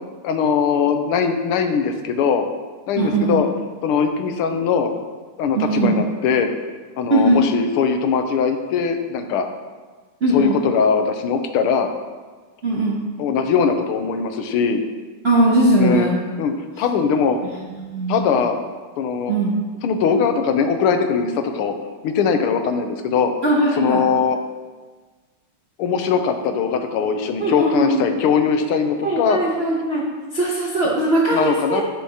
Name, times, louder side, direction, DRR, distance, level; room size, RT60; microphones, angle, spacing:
voice 1, 0.2-2.4 2.9-3.5 3.8-4.9 5.4-6.5 7.0-9.5 10.3-11.9 13.2-14.8 15.8-16.1 16.4-16.5 16.8-17.4 18.1-18.6 19.0-19.3 19.8-21.7 22.0-23.3 23.8-24.4 25.8-29.4 31.3-31.8, left 6 dB, 85° left, 6 dB, 1.6 m, -20 dB
voice 2, 3.0-3.4 5.5-5.9 7.1-7.4 10.2-10.6 12.6-13.0 15.2-16.2 17.7-18.3 19.3-19.5 23.4-24.0 27.4-28.0 29.0-30.0 30.3-31.8, right 1 dB, 55° right, -5 dB, 0.7 m, -19 dB
11.5 x 6.3 x 2.8 m, 1.4 s
omnidirectional pair, 2.4 m